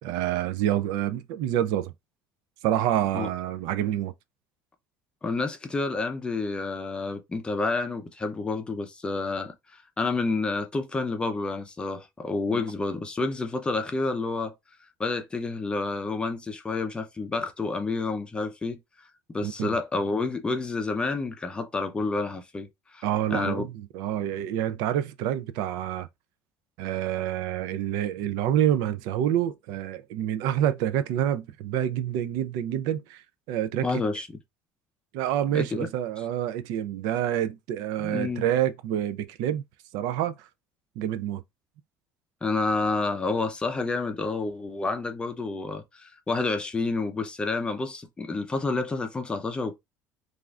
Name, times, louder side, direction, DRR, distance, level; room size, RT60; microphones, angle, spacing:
voice 1, 0.0-1.9 2.6-4.1 12.5-12.6 19.4-19.7 23.0-26.1 26.8-33.2 33.5-34.0 35.1-39.6 39.9-40.5 41.0-41.4, right 11 dB, 75° right, 0.3 m, -27 dB
voice 2, 5.2-9.5 10.0-14.5 15.0-18.8 19.3-22.7 22.9-23.7 33.8-34.3 35.5-35.9 38.0-38.5 42.4-49.8, left 3 dB, 15° left, 0.5 m, -29 dB
3.1 x 2.4 x 2.4 m
cardioid pair, 145°, 7 cm